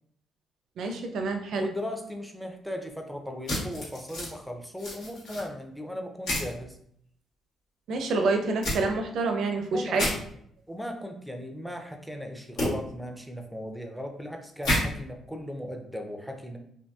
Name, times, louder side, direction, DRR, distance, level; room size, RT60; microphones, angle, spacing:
voice 1, 0.8-1.7 7.9-10.1, right 3 dB, 70° right, 4 dB, 0.5 m, -27 dB
voice 2, 1.6-6.8 9.7-10.1 10.7-16.6, equal, ahead, 4 dB, 0.4 m, -37 dB
sound 1, 3.5-4.3 4.8-5.4 6.3-6.5 8.6-8.8 9.9-10.1 12.6-12.7 14.6-14.8, left 1 dB, 85° left, 1.3 m, -29 dB
2.6 x 2.6 x 2.3 m, 0.68 s
cardioid pair, 90°, 0 cm